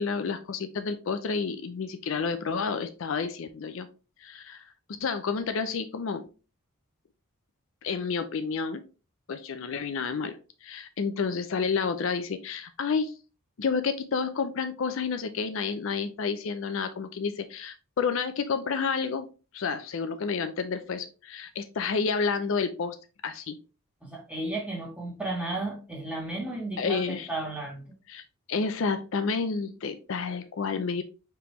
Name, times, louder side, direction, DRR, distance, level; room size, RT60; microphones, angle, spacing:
voice 1, 0.0-3.9 4.2-4.6 5.0-6.3 7.8-8.8 9.3-13.1 13.6-23.0 23.2-23.6 26.8-27.3 28.1-28.2 28.5-31.0, left 5 dB, 60° left, 9 dB, 0.4 m, -30 dB
voice 2, 24.0-27.9, right 2 dB, 5° right, -2 dB, 1.4 m, -34 dB
4.9 x 3.4 x 3.0 m, 0.34 s
head